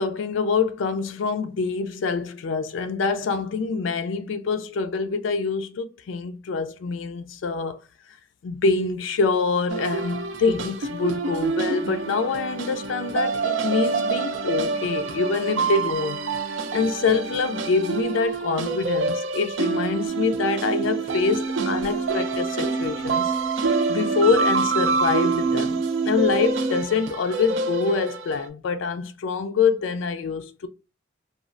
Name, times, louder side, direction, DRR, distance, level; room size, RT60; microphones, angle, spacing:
voice 1, 0.0-7.8 8.4-16.2 16.7-23.3 23.9-30.7, left 4 dB, 80° left, 0.4 m, -25 dB
sound 1, 9.7-28.4, right 4 dB, 75° right, 0.5 m, -27 dB
sound 2, 20.1-26.8, right 3 dB, 15° right, 0.5 m, -30 dB
3.0 x 2.3 x 2.4 m
head